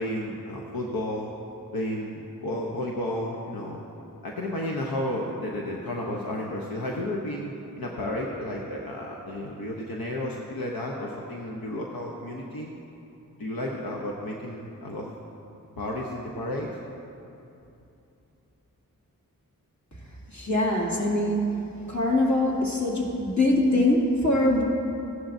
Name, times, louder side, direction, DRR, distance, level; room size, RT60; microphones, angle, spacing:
voice 1, 0.0-1.3 1.7-3.8 4.2-7.5 7.8-12.7 13.4-15.1 15.8-16.7, left 1 dB, 85° left, -2 dB, 1.0 m, -32 dB
voice 2, 20.3-21.5 21.9-24.6, left 1 dB, 55° left, -4 dB, 2.4 m, -23 dB
15.5 x 11.5 x 2.7 m, 2.8 s
wide cardioid pair, 50°, 35 cm